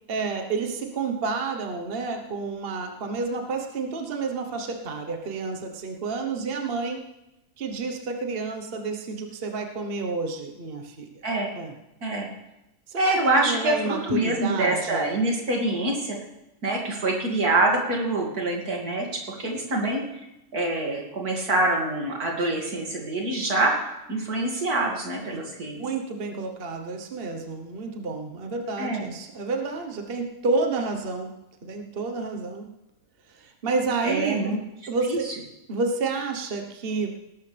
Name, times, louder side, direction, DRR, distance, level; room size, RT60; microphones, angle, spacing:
voice 1, 0.1-7.0 7.6-11.1 11.5-11.7 12.9-15.1 25.3-25.5 25.8-31.3 31.6-32.7 33.3-34.6 34.9-35.3 35.7-37.1, right 4 dB, 40° right, 4 dB, 1.3 m, -30 dB
voice 2, 11.2-11.6 12.0-12.3 13.0-16.2 16.6-20.0 20.5-23.7 24.1-25.8 28.8-29.1 34.0-34.5 35.1-35.2, right 2 dB, 90° right, -1 dB, 3.0 m, -25 dB
19.0 x 12.0 x 3.4 m, 0.92 s
omnidirectional pair, 1.6 m